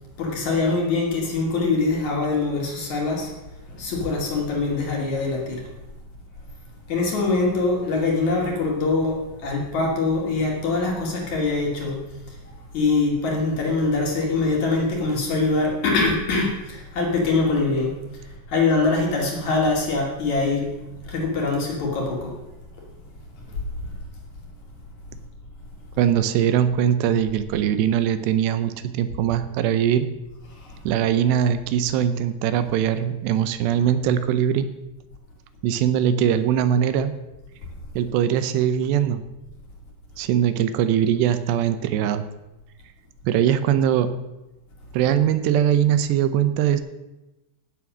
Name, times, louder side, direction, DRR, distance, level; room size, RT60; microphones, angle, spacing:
voice 1, 0.2-3.3 3.7-5.6 6.9-12.0 12.7-17.9 18.5-20.7 21.1-22.3, left 3 dB, 45° left, -1 dB, 3.3 m, -23 dB
voice 2, 26.0-30.1 30.9-34.7 35.6-37.1 38.0-39.2 40.2-42.2 43.2-44.1 44.9-46.8, right 9 dB, 80° right, 11 dB, 2.8 m, -21 dB
16.5 x 7.5 x 6.2 m, 0.99 s
omnidirectional pair, 5.3 m